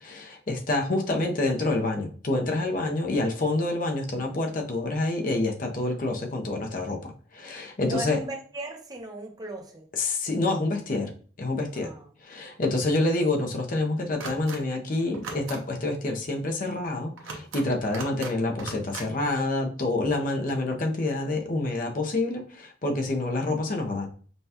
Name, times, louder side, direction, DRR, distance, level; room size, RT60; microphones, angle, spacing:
voice 1, 0.0-8.2 10.0-11.1 11.4-11.9 12.2-24.1, left 2 dB, 45° left, 2 dB, 0.6 m, -27 dB
voice 2, 7.8-9.9 11.7-12.1, right 2 dB, 20° right, 2 dB, 0.6 m, -37 dB
sound 1, 14.2-14.6 15.1-15.6 17.2-17.6 17.9-18.3 18.6-19.1, right 4 dB, 90° right, 0.8 m, -37 dB
5.4 x 2.3 x 2.8 m, 0.43 s
head